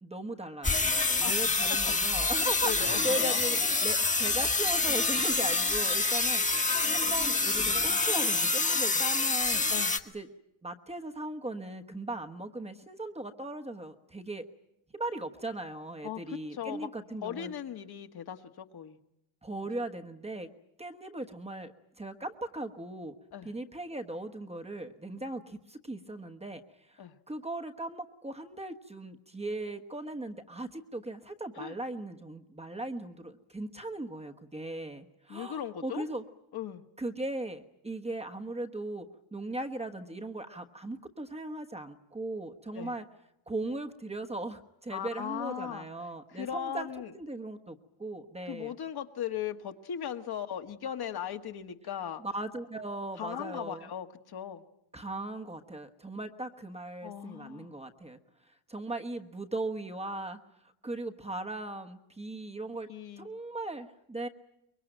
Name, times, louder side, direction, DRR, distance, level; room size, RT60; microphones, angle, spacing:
voice 1, 0.0-0.8 1.2-9.7 10.1-10.3 10.6-14.5 14.9-17.5 19.4-20.5 20.8-21.7 22.0-23.1 23.4-26.6 26.9-36.2 37.0-39.1 39.3-43.0 43.5-46.9 47.1-48.7 52.2-53.9 54.9-58.2 58.5-62.9 63.2-64.3, right 2 dB, 15° right, 5 dB, 1.2 m, -38 dB
sound 1, 0.6-10.0, left 3 dB, 15° left, 1.4 m, -27 dB
voice 2, 2.4-3.4 9.7-9.9 16.0-16.9 17.2-19.0 23.3-23.6 27.0-27.2 31.6-31.7 35.3-36.0 36.5-36.8 42.7-43.0 44.9-45.9 46.3-47.1 48.5-52.2 53.2-54.6 57.0-57.7 62.9-63.3, left 9 dB, 50° left, 7 dB, 1.6 m, -38 dB
24.0 x 22.5 x 9.0 m, 0.83 s
cardioid pair, 140°, 48 cm